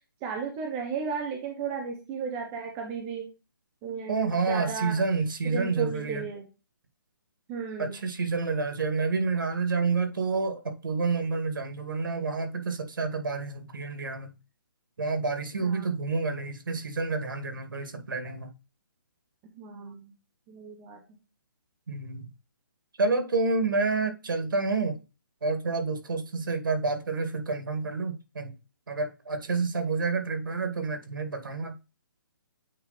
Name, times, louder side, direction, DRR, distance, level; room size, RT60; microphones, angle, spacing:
voice 1, 0.2-3.3 3.8-5.0 5.4-6.5 7.5-8.0 15.6-15.9 19.5-20.1 20.5-21.0, right 5 dB, 5° right, 0.3 m, -34 dB
voice 2, 4.1-6.3 7.8-14.3 15.0-18.5 21.9-22.3 23.0-25.0 25.4-28.5 28.9-31.7, right 4 dB, 70° right, 2.0 m, -29 dB
8.7 x 3.3 x 4.1 m
hypercardioid pair, 175°, 12 cm